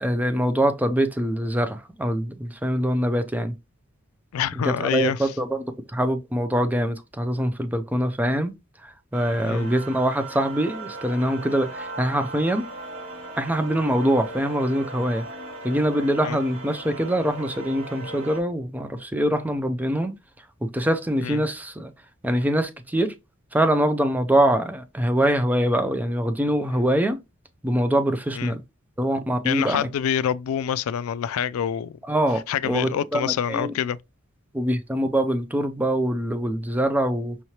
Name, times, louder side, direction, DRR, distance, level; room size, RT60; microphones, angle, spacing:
voice 1, 0.0-3.5 4.6-8.5 8.8-12.7 13.4-15.2 15.6-20.1 20.7-21.9 22.2-23.1 23.5-27.2 27.6-28.6 29.0-29.9 32.1-32.4 32.6-33.7 34.5-37.4, right 1 dB, 10° right, 0.4 m, -24 dB
voice 2, 4.3-5.3 9.4-9.7 16.2-16.4 21.2-21.4 28.3-28.5 29.4-32.0 32.5-34.0, left 9 dB, 85° left, 0.3 m, -26 dB
sound 1, 9.1-18.4, right 2 dB, 60° right, 2.4 m, -38 dB
5.6 x 3.1 x 2.8 m
head